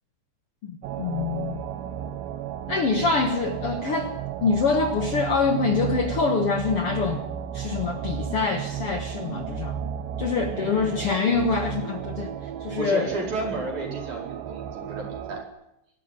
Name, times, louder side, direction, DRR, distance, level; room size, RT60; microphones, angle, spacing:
voice 1, 0.6-1.6 2.7-4.1 4.4-7.2 7.5-9.7 10.2-12.3 12.6-13.1, left 4 dB, 85° left, 6 dB, 1.2 m, -25 dB
sound 1, 0.8-15.4, right 9 dB, 90° right, 3.4 m, -33 dB
voice 2, 10.5-11.1 12.8-15.4, right 2 dB, 45° right, 1 dB, 5.9 m, -33 dB
23.0 x 13.0 x 9.9 m, 0.86 s
omnidirectional pair, 4.8 m